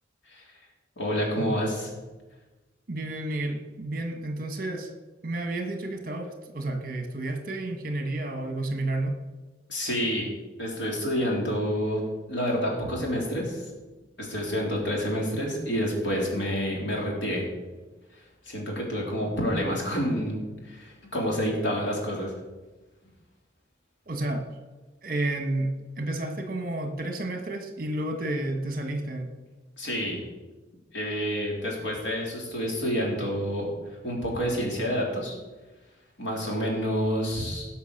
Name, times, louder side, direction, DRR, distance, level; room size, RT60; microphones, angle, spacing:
voice 1, 1.0-1.9 9.7-10.3 10.6-12.0 12.3-13.7 14.2-17.5 18.1-22.3 29.8-30.2 30.9-33.7 34.0-35.4 36.2-37.7, equal, 70° left, -2 dB, 3.8 m, -28 dB
voice 2, 2.9-4.9 5.2-9.1 24.1-24.5 25.0-29.3, right 2 dB, 45° right, 5 dB, 1.5 m, -31 dB
17.0 x 5.9 x 6.6 m, 1.2 s
head